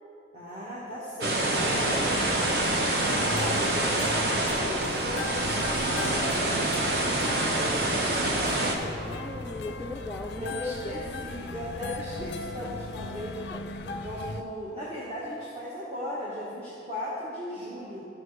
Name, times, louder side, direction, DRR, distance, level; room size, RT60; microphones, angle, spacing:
voice 1, 0.3-9.0 10.4-13.4 13.8-18.1, equal, 35° right, -7 dB, 1.4 m, -38 dB
sound 1, 1.2-8.8, right 2 dB, 60° right, 0.9 m, -26 dB
sound 2, 1.5-14.4, left 3 dB, 65° left, 0.4 m, -38 dB
voice 2, 9.0-11.2 12.6-12.7 13.5-13.6, left 2 dB, 5° left, -2 dB, 0.4 m, -38 dB
15.0 x 5.9 x 3.2 m, 2.6 s
head